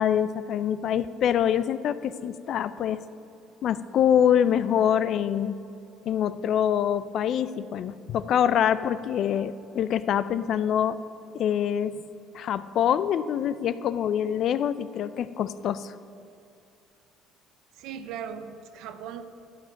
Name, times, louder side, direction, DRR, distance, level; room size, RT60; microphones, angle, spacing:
voice 1, 0.0-3.0 3.6-5.6 6.1-11.0 11.3-12.0 12.3-15.9, left 9 dB, 60° left, 14 dB, 0.4 m, -25 dB
voice 2, 17.7-19.2, right 8 dB, 70° right, 10 dB, 0.7 m, -38 dB
11.5 x 7.6 x 5.8 m, 2.7 s
hypercardioid pair, 70°, 0 cm